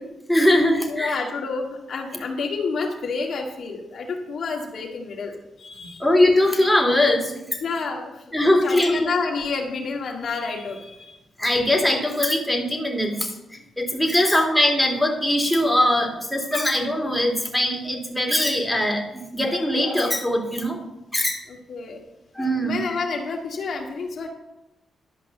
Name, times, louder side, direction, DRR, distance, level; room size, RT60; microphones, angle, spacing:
voice 1, 0.3-1.1 5.8-7.6 8.3-9.1 11.4-13.3 13.8-20.8 21.1-21.4 22.4-22.8, left 1 dB, 5° left, 0 dB, 2.6 m, -21 dB
voice 2, 0.9-6.0 7.6-8.4 8.6-11.2 14.2-14.4 21.5-22.0 22.6-24.3, left 4 dB, 65° left, 1 dB, 1.9 m, -29 dB
11.5 x 5.3 x 6.6 m, 0.95 s
cardioid pair, 70°, 0 cm